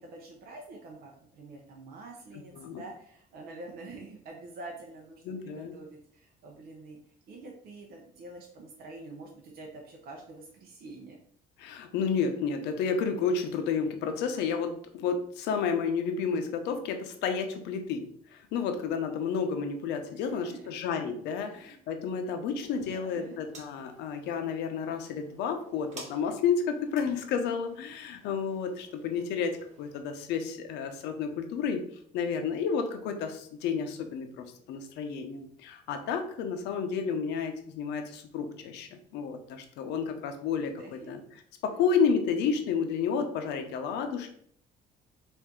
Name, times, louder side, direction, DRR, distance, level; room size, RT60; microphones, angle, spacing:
voice 1, 0.0-7.0 7.3-11.2 20.1-20.7 21.4-21.8 22.5-23.4 40.8-41.1 41.7-41.8, right 2 dB, 65° right, 0 dB, 0.8 m, -47 dB
voice 2, 5.3-5.7 11.6-18.0 18.3-31.8 32.1-41.2 41.6-44.3, left 6 dB, 85° left, 6 dB, 0.7 m, -31 dB
Electric light activation buzz y switch, 22.7-30.0, right 2 dB, 45° right, 1.3 m, -53 dB
4.2 x 2.6 x 3.7 m, 0.63 s
cardioid pair, 110°, 17 cm